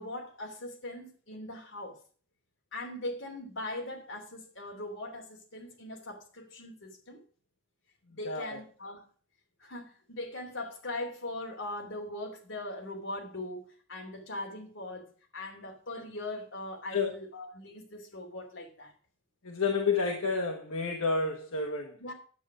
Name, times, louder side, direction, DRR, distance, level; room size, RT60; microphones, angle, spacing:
voice 1, 0.0-2.0 2.7-7.2 8.1-9.0 9.6-18.9 22.0-22.1, left 1 dB, 65° left, 3.0 m, -40 dB
voice 2, 8.2-8.6 16.9-17.1 19.4-21.9, left 4 dB, 80° left, 1.3 m, -30 dB
10.0 x 7.9 x 4.9 m
head